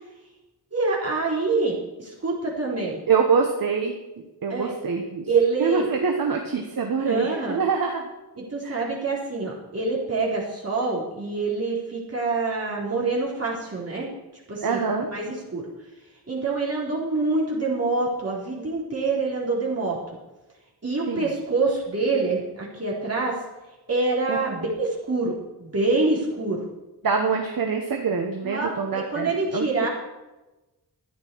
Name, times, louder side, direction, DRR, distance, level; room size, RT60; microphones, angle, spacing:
voice 1, 0.7-3.0 4.5-4.7 5.3-5.9 7.0-7.6 8.5-14.1 14.5-14.8 15.1-15.6 16.3-20.2 20.8-23.4 23.9-26.6 28.4-29.9, right 3 dB, 35° right, -4 dB, 4.1 m, -26 dB
voice 2, 3.1-5.3 5.6-8.0 8.6-8.9 14.6-15.1 21.1-21.3 24.3-24.6 27.0-29.9, right 5 dB, 55° right, 3 dB, 1.3 m, -25 dB
14.0 x 10.5 x 4.7 m, 1.1 s
wide cardioid pair, 120°, 40 cm